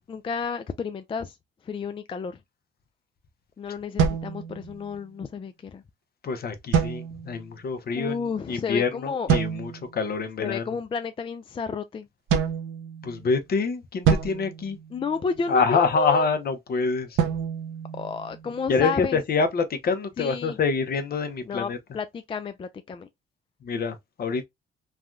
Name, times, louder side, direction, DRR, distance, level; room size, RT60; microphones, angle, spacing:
voice 1, 0.1-1.4 1.6-2.4 3.6-5.8 7.9-9.3 10.4-12.1 14.9-16.3 17.9-19.2 20.2-20.6 21.4-23.1, left 5 dB, 25° left, 0.3 m, -31 dB
sound 1, 4.0-5.1 6.7-7.5 9.3-9.9 12.3-13.4 14.0-15.5 17.2-18.7, right 7 dB, 85° right, 0.7 m, -27 dB
voice 2, 6.2-10.8 13.0-14.8 15.5-17.2 18.7-21.8 23.6-24.5, left 4 dB, 50° left, 0.7 m, -26 dB
3.3 x 2.2 x 2.4 m
cardioid pair, 90°, 20 cm